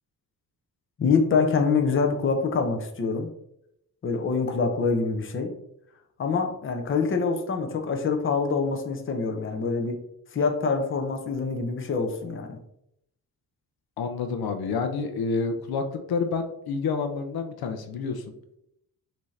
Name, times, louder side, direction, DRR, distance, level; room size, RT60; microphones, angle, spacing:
voice 1, 1.0-3.3 4.0-5.5 6.2-10.0 10.3-12.6, left 4 dB, 35° left, 4 dB, 0.7 m, -25 dB
voice 2, 14.0-18.2, left 4 dB, 75° left, 7 dB, 0.6 m, -28 dB
5.9 x 2.8 x 3.2 m, 0.79 s
wide cardioid pair, 130°, 38 cm